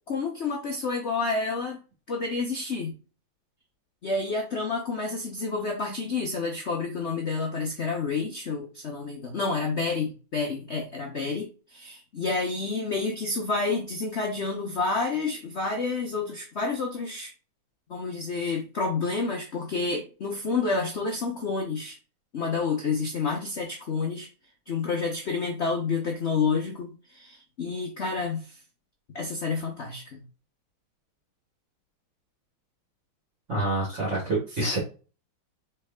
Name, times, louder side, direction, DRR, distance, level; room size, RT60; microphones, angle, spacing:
voice 1, 0.1-1.8 2.1-3.0 4.0-17.3 17.9-22.0 22.3-24.3 24.7-28.6 29.1-30.2, left 4 dB, 80° left, 1 dB, 0.6 m, -29 dB
voice 2, 33.5-34.8, right 2 dB, 35° right, -4 dB, 1.7 m, -27 dB
4.6 x 3.3 x 3.4 m, 0.34 s
omnidirectional pair, 2.3 m